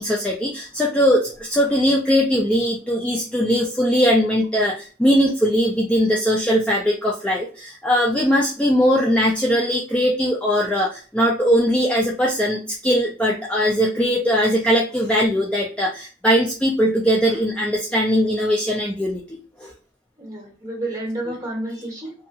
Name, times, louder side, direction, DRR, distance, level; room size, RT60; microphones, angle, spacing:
voice 1, 0.0-19.2 19.6-19.7, equal, 5° left, -3 dB, 0.3 m, -20 dB
voice 2, 20.2-22.1, right 1 dB, 20° right, -2 dB, 1.3 m, -30 dB
2.6 x 2.4 x 2.6 m, 0.38 s
head